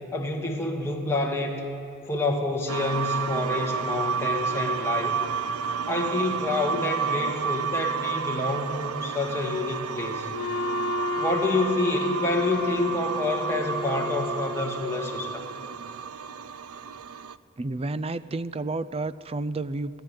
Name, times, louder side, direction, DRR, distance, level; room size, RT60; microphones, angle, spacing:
voice 1, 0.1-1.6 2.1-5.2 5.9-10.3 11.2-15.5, left 2 dB, 10° left, -1 dB, 2.0 m, -28 dB
sound 1, 2.7-17.3, right 6 dB, 80° right, 0.5 m, -31 dB
Wind instrument woodwind instrument, 10.3-15.0, left 3 dB, 85° left, 0.8 m, -32 dB
voice 2, 17.6-20.0, right 2 dB, 25° right, 15 dB, 0.4 m, -31 dB
29.5 x 11.0 x 8.8 m, 2.6 s
head